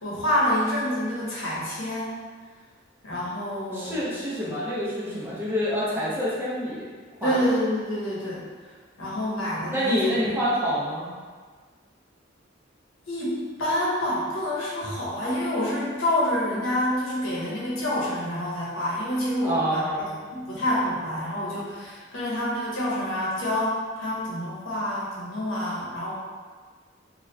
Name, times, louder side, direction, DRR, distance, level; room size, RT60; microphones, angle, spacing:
voice 1, 0.0-2.1 3.0-4.1 7.2-8.4 9.0-10.0 13.1-19.8 20.3-26.1, left 1 dB, 90° left, -7 dB, 1.0 m, -27 dB
voice 2, 3.7-6.9 7.2-7.4 9.7-11.1 19.4-20.1, equal, 10° right, -9 dB, 0.8 m, -27 dB
2.9 x 2.4 x 3.2 m, 1.5 s
head